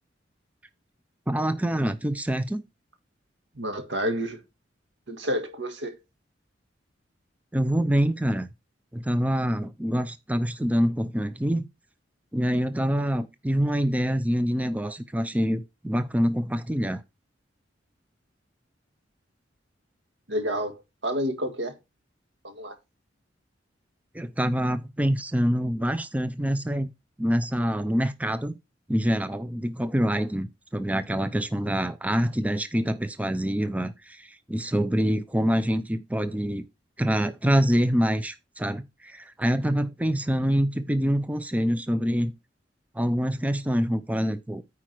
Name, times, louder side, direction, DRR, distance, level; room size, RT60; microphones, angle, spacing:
voice 1, 1.3-2.6 7.5-8.5 8.9-11.7 12.3-17.0 24.1-26.9 27.2-28.6 28.9-36.6 37.0-42.3 42.9-44.6, equal, 10° right, 0.5 m, -25 dB
voice 2, 3.6-4.4 5.1-6.0 20.3-20.7 21.0-21.7 22.4-22.7, equal, 75° right, 1.6 m, -29 dB
9.3 x 4.8 x 4.5 m
head